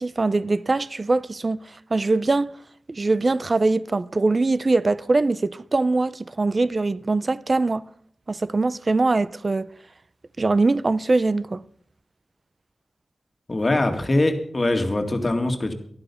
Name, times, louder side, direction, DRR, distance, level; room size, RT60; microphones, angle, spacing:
voice 1, 0.0-2.6 2.9-7.8 8.3-9.7 10.4-11.6, right 3 dB, 40° right, 0.5 m, -22 dB
voice 2, 13.5-15.7, left 2 dB, 35° left, 2.0 m, -22 dB
12.0 x 11.5 x 6.9 m
wide cardioid pair, 80°, 0 cm